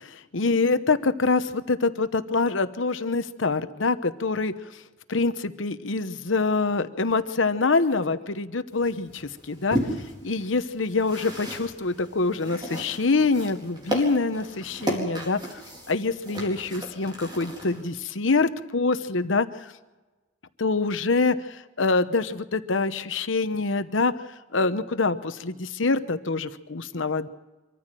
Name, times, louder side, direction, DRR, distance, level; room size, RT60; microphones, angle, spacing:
voice 1, 0.0-4.5 5.1-9.8 10.2-15.6 15.9-19.7 20.6-24.1 24.5-27.3, left 3 dB, 70° left, 11 dB, 1.0 m, -25 dB
sound 1, 8.7-17.8, right 1 dB, 25° right, 4.4 m, -35 dB
25.0 x 14.0 x 7.6 m, 1.2 s
head